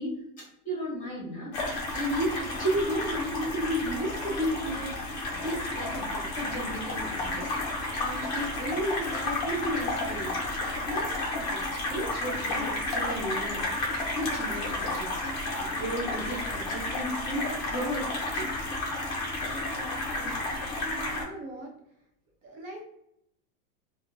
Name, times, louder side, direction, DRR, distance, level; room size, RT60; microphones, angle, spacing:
voice 1, 0.0-1.6 1.9-7.5 8.0-13.8 14.1-15.2 15.6-18.5, equal, 15° left, -6 dB, 0.9 m, -34 dB
sound 1, 1.5-21.2, left 2 dB, 35° left, 0.4 m, -32 dB
voice 2, 19.5-20.4 20.8-21.7 22.4-22.8, right 1 dB, 60° right, 0 dB, 0.8 m, -42 dB
2.5 x 2.1 x 2.6 m, 0.78 s
supercardioid pair, 170°, 47 cm